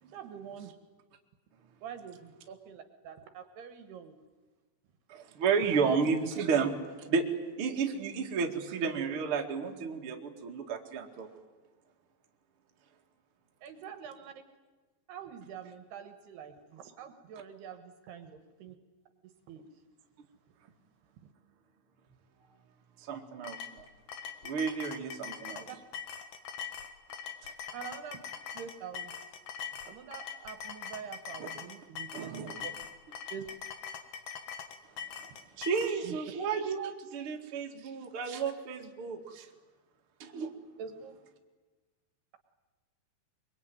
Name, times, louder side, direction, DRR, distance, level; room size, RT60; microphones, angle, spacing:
voice 1, 0.0-0.8 1.8-4.2 5.7-6.0 13.6-14.3 15.1-18.8 19.5-19.7 25.7-25.8 27.7-28.2 28.5-29.1 29.8-32.7 33.3-33.4 36.0-36.2 40.8-41.2, right 8 dB, 70° right, 8 dB, 3.1 m, -45 dB
voice 2, 5.1-7.3 7.6-11.3 23.0-23.9 24.4-25.6 27.4-27.5 31.4-31.5 32.1-32.7 35.6-39.5 40.2-40.5, right 5 dB, 40° right, 2 dB, 2.1 m, -32 dB
sound 1, 23.4-36.0, left 7 dB, 60° left, 2.6 m, -42 dB
23.5 x 23.0 x 9.4 m, 1.3 s
omnidirectional pair, 5.3 m